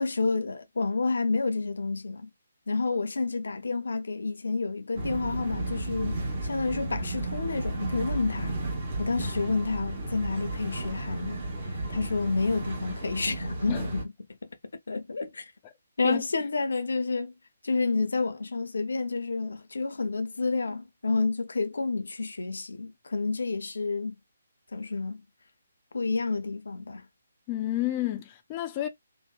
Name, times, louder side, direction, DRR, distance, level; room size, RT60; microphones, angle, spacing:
voice 1, 0.0-2.3 2.7-8.6 9.0-11.4 11.9-14.0 14.4-14.5 14.9-15.5 16.0-17.3 17.6-24.1 24.7-25.2 25.9-27.1, left 3 dB, 85° left, 0.6 m, -29 dB
sound 1, 4.9-14.0, right 2 dB, 35° right, 1.1 m, -33 dB
voice 2, 27.5-28.9, left 14 dB, 20° left, 0.4 m, -30 dB
2.7 x 2.1 x 2.2 m
hypercardioid pair, 165°, 0 cm